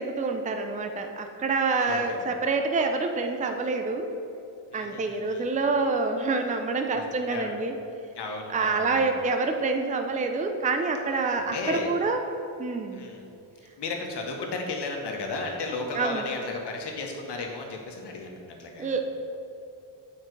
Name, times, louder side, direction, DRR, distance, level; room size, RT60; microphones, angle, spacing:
voice 1, 0.0-4.1 4.7-7.7 8.5-12.2 12.6-13.1 15.9-16.3 18.8-19.1, right 3 dB, 15° right, 5 dB, 0.6 m, -27 dB
voice 2, 1.8-2.2 4.7-5.4 6.9-7.6 8.1-9.1 11.4-11.9 12.9-13.3 13.8-18.9, left 3 dB, 55° left, 1 dB, 1.6 m, -34 dB
7.3 x 5.4 x 4.8 m, 2.7 s
cardioid pair, 85°, 50 cm